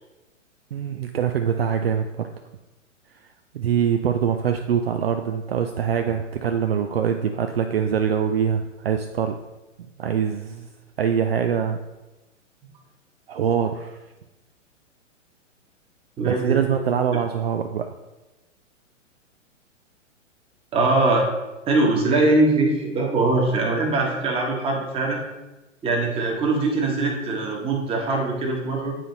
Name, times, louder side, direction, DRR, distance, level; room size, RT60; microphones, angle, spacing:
voice 1, 0.7-2.3 3.5-9.4 10.0-10.7 11.0-11.8 13.3-14.0 16.2-17.9, right 8 dB, 50° right, 6 dB, 0.5 m, -24 dB
voice 2, 16.2-16.7 20.7-21.3 21.7-25.2 25.8-29.0, right 2 dB, 15° right, 0 dB, 1.3 m, -22 dB
9.1 x 4.1 x 4.0 m, 1.1 s
figure-of-eight pair, 115°, 38 cm